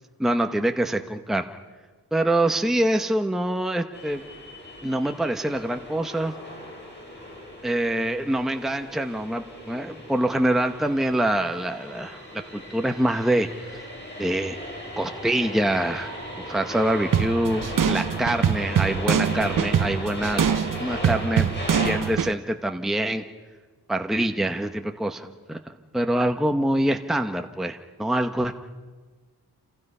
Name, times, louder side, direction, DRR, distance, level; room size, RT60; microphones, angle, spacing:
voice 1, 0.2-1.4 2.1-4.2 4.8-6.3 7.6-12.2 12.5-13.8 14.2-14.6 15.0-16.2 16.5-20.4 20.8-23.2 23.9-25.6 25.9-28.6, right 1 dB, ahead, 5 dB, 0.9 m, -25 dB
sound 1, 3.9-22.0, left 1 dB, 25° left, 6.6 m, -37 dB
sound 2, 17.1-22.3, right 8 dB, 55° right, 0.7 m, -24 dB
29.0 x 27.5 x 5.5 m, 1.4 s
wide cardioid pair, 135°, 39 cm